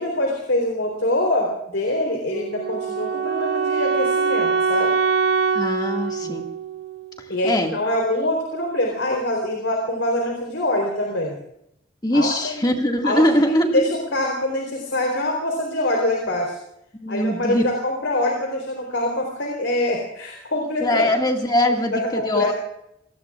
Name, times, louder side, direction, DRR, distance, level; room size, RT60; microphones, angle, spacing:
voice 1, 0.0-5.0 6.2-6.4 7.3-11.4 12.1-12.7 13.0-16.6 17.1-21.1 21.9-22.5, left 1 dB, 80° left, 0 dB, 3.8 m, -24 dB
Wind instrument woodwind instrument, 2.3-7.3, right 5 dB, 60° right, 2.4 m, -23 dB
voice 2, 5.6-6.5 7.4-7.7 12.0-13.8 16.9-17.7 20.8-22.5, left 1 dB, 20° left, 2 dB, 2.0 m, -21 dB
29.0 x 18.5 x 2.5 m, 0.77 s
head